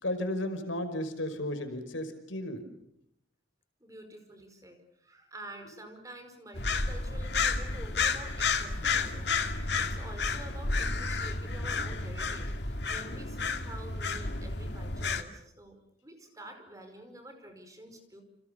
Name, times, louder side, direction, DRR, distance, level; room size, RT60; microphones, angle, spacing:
voice 1, 0.0-2.6, left 1 dB, 80° left, 8 dB, 5.3 m, -34 dB
voice 2, 3.8-18.2, right 1 dB, 15° right, 6 dB, 5.2 m, -48 dB
sound 1, 6.6-15.2, left 4 dB, 60° left, 2.4 m, -31 dB
30.0 x 27.5 x 6.9 m, 0.75 s
head